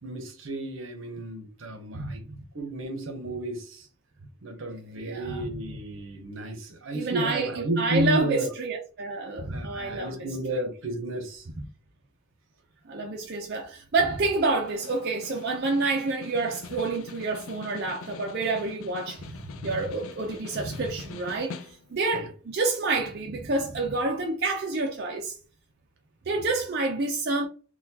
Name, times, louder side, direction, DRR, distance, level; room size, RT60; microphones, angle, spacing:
voice 1, 0.0-2.2 2.5-3.9 4.4-8.5 9.5-11.5 22.1-22.3, right 1 dB, 70° right, 0.8 m, -32 dB
voice 2, 1.9-2.4 5.0-5.5 6.9-10.3 11.6-11.7 12.9-25.4 26.3-27.5, right 3 dB, 50° right, 0.5 m, -28 dB
Snare drum, 14.1-22.1, left 5 dB, 80° left, 0.4 m, -44 dB
4.0 x 2.3 x 2.7 m
head